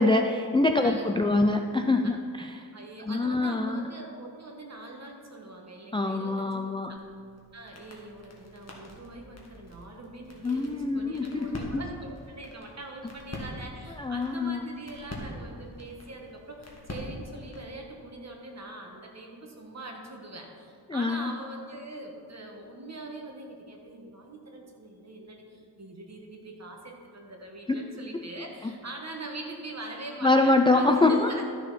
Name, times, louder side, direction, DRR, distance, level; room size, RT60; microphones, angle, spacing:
voice 1, 0.0-2.7 3.0-3.8 5.9-6.9 10.4-11.8 14.0-14.6 20.9-21.3 27.7-27.8 28.1-28.2 30.2-31.4, left 2 dB, 15° left, 4 dB, 0.3 m, -25 dB
voice 2, 2.7-7.0 7.5-31.4, right 2 dB, 40° right, 1 dB, 1.5 m, -43 dB
sound 1, 6.9-17.8, left 1 dB, 40° left, 1.7 m, -44 dB
13.0 x 6.4 x 4.2 m, 2.4 s
wide cardioid pair, 105°, 41 cm